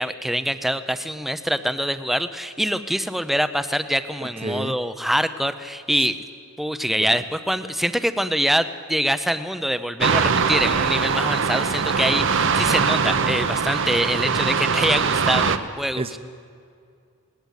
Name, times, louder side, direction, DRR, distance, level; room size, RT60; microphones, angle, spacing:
voice 1, 0.0-6.2 6.6-16.2, equal, ahead, 11 dB, 0.6 m, -24 dB
voice 2, 4.2-4.7 6.9-7.2 15.9-16.2, right 2 dB, 25° right, 10 dB, 0.9 m, -30 dB
sound 1, 10.0-15.6, right 5 dB, 55° right, 0.9 m, -21 dB
20.0 x 19.0 x 8.3 m, 2.3 s
head